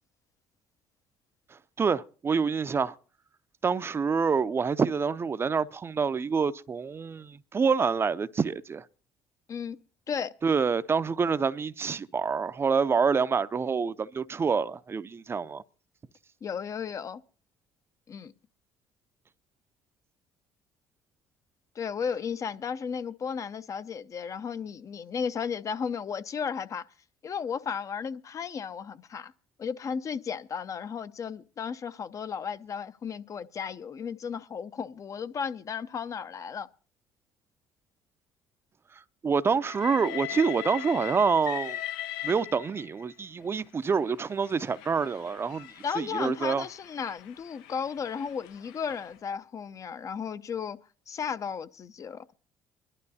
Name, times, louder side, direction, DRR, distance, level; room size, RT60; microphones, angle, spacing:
voice 1, 1.8-2.9 3.6-8.8 10.4-15.6 39.2-41.8 42.2-45.7 46.0-46.6, right 5 dB, 30° right, 0.5 m, -27 dB
voice 2, 9.5-9.8 10.1-10.3 16.4-17.2 18.1-18.3 21.8-26.8 27.2-29.3 29.6-36.7 45.8-50.8 51.1-52.3, left 6 dB, 45° left, 0.7 m, -34 dB
Train, 39.6-43.0 43.9-49.1, left 13 dB, 85° left, 0.7 m, -40 dB
25.0 x 12.0 x 2.8 m
supercardioid pair, 75°, 8 cm